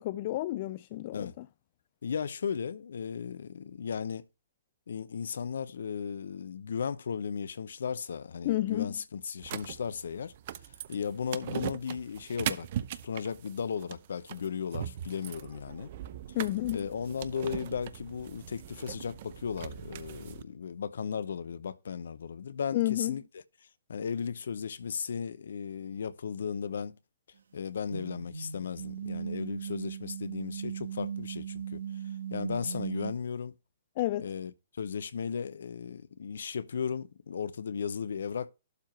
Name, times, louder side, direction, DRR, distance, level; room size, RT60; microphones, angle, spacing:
voice 1, 0.0-1.5 8.4-9.0 16.3-16.8 22.7-23.2 34.0-34.3, left 16 dB, 45° left, 0.4 m, -31 dB
voice 2, 2.0-4.2 4.9-10.3 10.9-15.9 16.7-23.4 23.9-27.0 27.5-31.8 32.3-33.5 34.2-34.5 34.8-38.5, left 6 dB, 70° left, 0.7 m, -36 dB
sound 1, 9.4-20.4, right 11 dB, 50° right, 0.7 m, -40 dB
sound 2, 27.8-33.1, right 8 dB, 75° right, 1.3 m, -38 dB
12.0 x 4.7 x 4.6 m
figure-of-eight pair, 125°, 0 cm